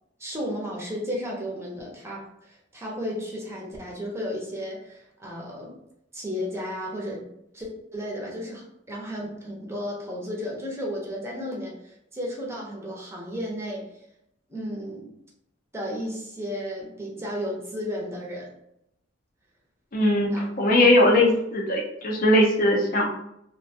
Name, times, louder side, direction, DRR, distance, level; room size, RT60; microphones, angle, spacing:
voice 1, 0.2-5.8 6.1-7.3 7.5-13.9 14.5-15.1 15.7-18.5 20.3-20.5, equal, 15° right, -3 dB, 0.6 m, -33 dB
voice 2, 19.9-20.3 20.6-23.1, left 1 dB, 45° left, 0 dB, 0.5 m, -20 dB
2.4 x 2.2 x 2.7 m, 0.79 s
head